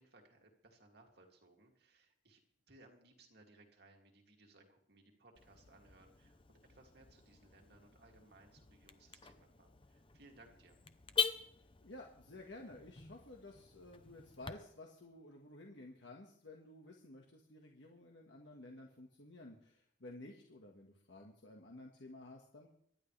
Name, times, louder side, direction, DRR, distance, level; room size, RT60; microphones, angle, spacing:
voice 1, 0.0-2.4 2.7-10.8, right 2 dB, 60° right, 2 dB, 2.7 m, -64 dB
Car / Alarm, 5.3-14.5, left 6 dB, 30° left, 0.8 m, -44 dB
voice 2, 11.6-22.7, left 2 dB, 70° left, 1 dB, 1.7 m, -54 dB
24.5 x 11.0 x 3.4 m, 0.69 s
head